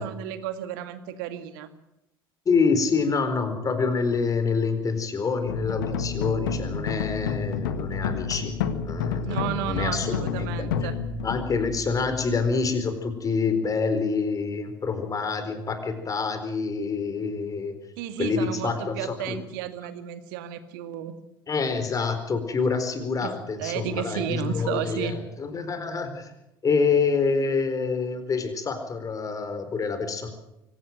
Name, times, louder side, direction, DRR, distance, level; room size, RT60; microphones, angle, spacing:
voice 1, 0.0-1.7 9.2-11.0 18.0-21.2 23.2-23.3 23.6-25.2, right 10 dB, 65° right, 9 dB, 2.1 m, -33 dB
voice 2, 2.5-8.5 8.8-10.9 11.2-17.7 18.2-19.4 21.5-26.3 26.6-30.3, left 4 dB, 30° left, 8 dB, 4.4 m, -27 dB
sound 1, 5.5-12.7, left 6 dB, 70° left, 1.8 m, -30 dB
24.5 x 17.0 x 7.8 m, 0.88 s
figure-of-eight pair, 65°, 12 cm